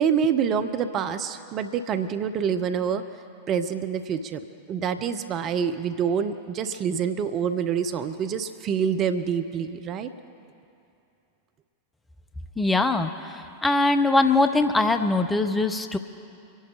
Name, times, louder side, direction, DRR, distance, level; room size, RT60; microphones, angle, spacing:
voice 1, 0.0-3.0 3.5-4.4 4.7-10.1, right 7 dB, 35° right, 9 dB, 0.7 m, -26 dB
voice 2, 12.6-16.0, left 2 dB, 10° left, 7 dB, 0.7 m, -22 dB
24.5 x 11.0 x 4.1 m, 2.6 s
figure-of-eight pair, 90°, 0 cm